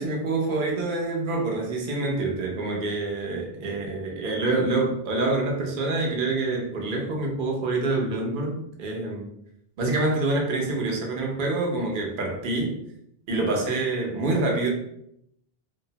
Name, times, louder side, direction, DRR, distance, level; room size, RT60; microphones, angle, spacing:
voice 1, 0.0-9.3 9.8-12.8 13.3-14.7, right 2 dB, 60° right, 0 dB, 0.7 m, -26 dB
2.7 x 2.0 x 2.7 m, 0.75 s
omnidirectional pair, 1.1 m